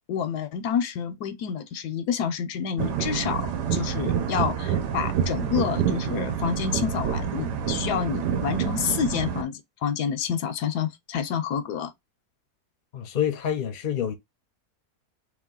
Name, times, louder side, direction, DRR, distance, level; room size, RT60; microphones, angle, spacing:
voice 1, 0.1-3.4 3.7-11.9, left 7 dB, 80° left, 1.2 m, -28 dB
sound 1, 2.8-9.4, right 8 dB, 85° right, 1.3 m, -27 dB
voice 2, 12.9-14.1, left 9 dB, 45° left, 0.7 m, -27 dB
3.2 x 3.1 x 3.7 m
omnidirectional pair, 1.7 m